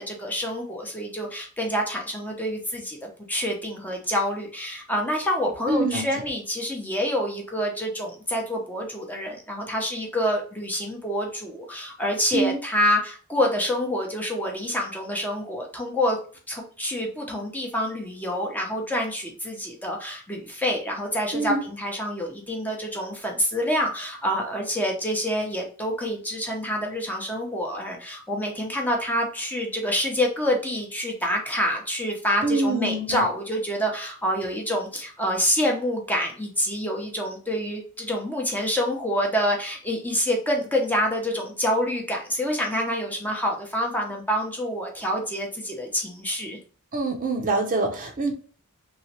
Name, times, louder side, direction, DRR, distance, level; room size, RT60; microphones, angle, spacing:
voice 1, 0.0-16.2 16.5-46.6, equal, 10° left, 0 dB, 0.7 m, -27 dB
voice 2, 5.7-6.1 12.3-12.6 21.3-21.6 32.4-33.3 46.9-48.3, right 2 dB, 35° right, 3 dB, 0.6 m, -25 dB
3.1 x 3.0 x 2.8 m, 0.42 s
head